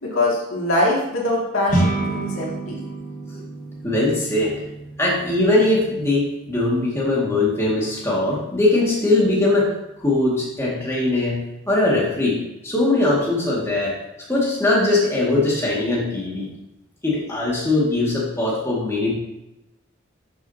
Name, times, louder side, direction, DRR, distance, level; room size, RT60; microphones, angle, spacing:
voice 1, 0.0-2.8, left 1 dB, 85° left, -3 dB, 2.5 m, -23 dB
sound 1, 1.7-11.2, right 2 dB, 40° left, 1.5 m, -31 dB
voice 2, 3.8-4.6 5.0-9.7 10.0-14.0 14.3-16.5 17.0-19.2, left 2 dB, 15° left, -6 dB, 2.1 m, -21 dB
13.0 x 6.4 x 2.9 m, 0.91 s
head